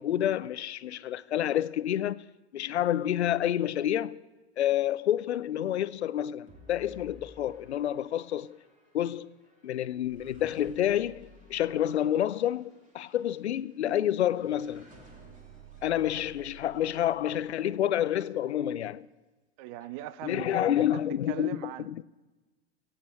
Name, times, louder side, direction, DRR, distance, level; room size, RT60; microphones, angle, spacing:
voice 1, 0.0-2.2 2.5-4.2 4.6-8.6 8.9-9.3 9.6-14.9 15.8-19.1 20.2-22.0, left 11 dB, 70° left, 0.7 m, -29 dB
sound 1, 6.5-17.8, right 3 dB, 20° right, 3.1 m, -54 dB
voice 2, 19.6-21.9, right 13 dB, 40° right, 0.7 m, -40 dB
24.0 x 8.6 x 4.5 m
figure-of-eight pair, 95°, 34 cm